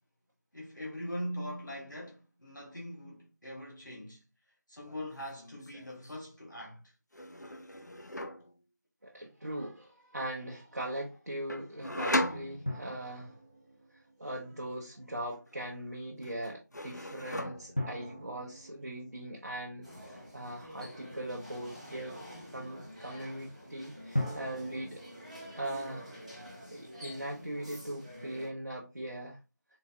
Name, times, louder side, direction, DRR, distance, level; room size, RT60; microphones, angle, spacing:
voice 1, 0.5-4.2 4.7-6.8, equal, 90° left, 1.3 m, -41 dB
sound 1, 4.8-5.1 5.3-6.1 7.1-8.5 11.5-13.1 15.3-15.9 16.2-17.9, left 1 dB, 70° left, 0.6 m, -37 dB
voice 2, 9.0-13.4 13.9-22.2 22.5-25.0 25.5-26.1 26.7-29.4, right 1 dB, 55° right, 0.7 m, -40 dB
sound 2, 12.7-14.9 17.8-20.7 24.1-26.0, left 1 dB, 30° left, 0.5 m, -40 dB
sound 3, 19.8-28.5, equal, 25° right, 1.0 m, -48 dB
3.7 x 2.4 x 2.8 m
figure-of-eight pair, 170°, 10 cm